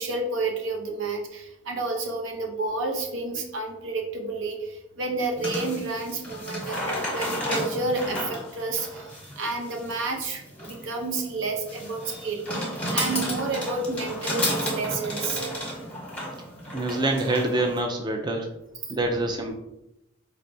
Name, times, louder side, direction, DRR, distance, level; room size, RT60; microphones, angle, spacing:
voice 1, 0.0-15.4 18.8-18.9, right 3 dB, 80° right, 2 dB, 0.7 m, -30 dB
sound 1, 5.4-17.8, equal, 5° left, 0.9 m, -32 dB
voice 2, 16.7-18.5 18.9-19.6, right 2 dB, 20° right, 3 dB, 0.4 m, -26 dB
4.3 x 3.3 x 2.6 m, 0.90 s
head